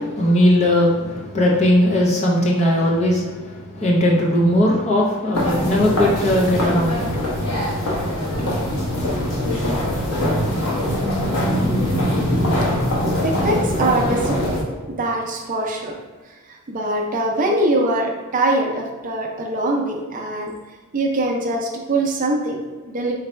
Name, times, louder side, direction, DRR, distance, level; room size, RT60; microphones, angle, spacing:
voice 1, 0.0-7.2 8.0-8.5, left 1 dB, 30° left, -3 dB, 0.7 m, -19 dB
sound 1, 5.3-14.6, left 1 dB, 85° left, 1.0 m, -22 dB
voice 2, 13.2-16.0 16.7-20.5 20.9-23.1, right 1 dB, 40° right, 1 dB, 0.5 m, -23 dB
3.9 x 2.2 x 4.3 m, 1.3 s
head